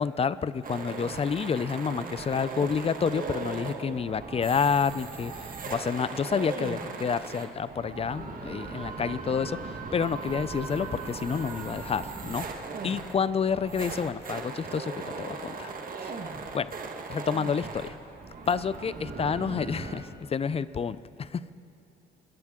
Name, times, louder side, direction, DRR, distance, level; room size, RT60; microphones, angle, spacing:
voice 1, 0.0-12.4 12.8-15.7 16.0-16.2 16.5-16.7 17.1-17.9 18.5-21.5, left 6 dB, 30° left, 16 dB, 0.4 m, -29 dB
sound 1, 0.6-20.0, right 4 dB, 45° right, 1.5 m, -38 dB
27.0 x 11.0 x 3.6 m, 2.8 s
cardioid pair, 90°, 20 cm